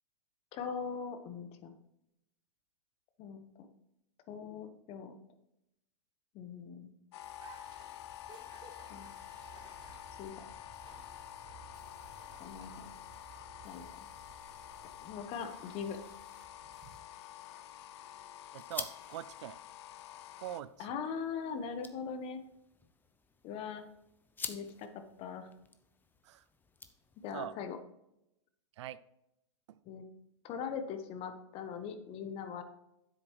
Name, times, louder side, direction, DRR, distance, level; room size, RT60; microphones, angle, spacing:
voice 1, 0.5-1.8 3.2-3.7 4.3-5.2 6.3-6.9 8.9-9.1 10.2-10.4 12.4-13.0 13.6-13.9 15.0-16.0 20.8-22.4 23.4-23.9 24.5-25.5 27.2-27.8 29.9-30.0 30.4-32.6, left 6 dB, 40° left, 8 dB, 1.2 m, -41 dB
sound 1, 7.1-20.6, left 13 dB, 60° left, 0.7 m, -49 dB
sound 2, 7.2-17.0, right 5 dB, 25° right, 1.5 m, -57 dB
sound 3, 17.1-27.5, left 4 dB, 10° left, 0.7 m, -49 dB
voice 2, 18.5-19.6 20.4-20.9 26.2-26.4 27.3-27.6 28.8-29.0, right 12 dB, 65° right, 17 dB, 0.5 m, -43 dB
9.8 x 7.8 x 3.1 m, 0.84 s
hypercardioid pair, 120°, 16 cm